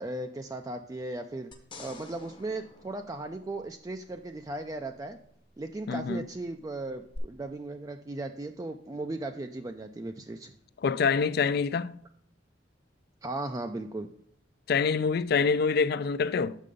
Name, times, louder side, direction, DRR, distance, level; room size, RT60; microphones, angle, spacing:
voice 1, 0.0-1.5 1.8-5.2 5.6-10.5 13.2-14.1, right 2 dB, 20° right, 0.3 m, -37 dB
sound 1, 1.5-4.0 7.1-7.2, left 2 dB, 25° left, 0.8 m, -48 dB
voice 2, 5.9-6.2 10.8-12.0 14.7-16.6, left 5 dB, 55° left, 0.4 m, -26 dB
6.6 x 5.4 x 4.9 m
head